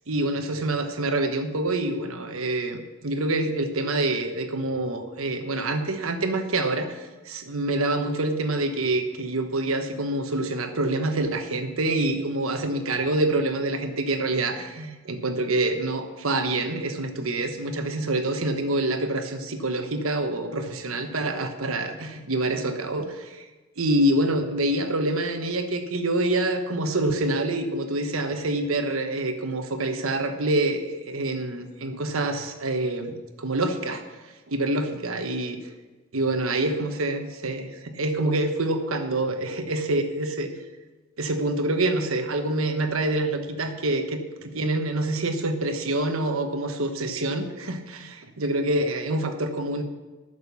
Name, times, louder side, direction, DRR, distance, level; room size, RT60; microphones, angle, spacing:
voice 1, 0.1-23.4 23.8-34.0 34.5-35.6 36.1-40.5 41.2-49.8, right 2 dB, 90° right, 6 dB, 1.2 m, -26 dB
11.0 x 6.8 x 7.0 m, 1.2 s
head